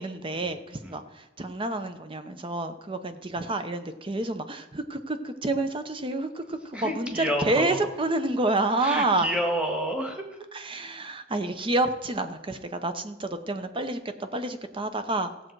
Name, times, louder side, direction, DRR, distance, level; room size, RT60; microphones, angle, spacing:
voice 1, 0.0-9.3 10.5-15.3, right 2 dB, 30° right, 9 dB, 0.8 m, -29 dB
voice 2, 6.7-7.8 8.8-10.5, equal, 5° right, 2 dB, 1.6 m, -29 dB
16.0 x 7.7 x 4.6 m, 0.99 s
head